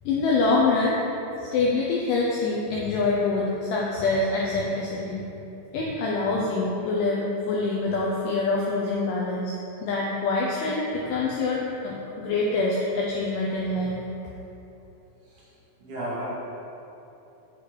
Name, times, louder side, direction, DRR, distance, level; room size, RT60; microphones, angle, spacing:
voice 1, 0.1-1.0 1.5-5.2 5.7-9.5 9.8-14.0, left 3 dB, 90° left, -4 dB, 1.9 m, -25 dB
voice 2, 15.2-16.2, right 1 dB, 70° right, -8 dB, 2.1 m, -35 dB
6.5 x 4.8 x 3.1 m, 2.9 s
omnidirectional pair, 4.3 m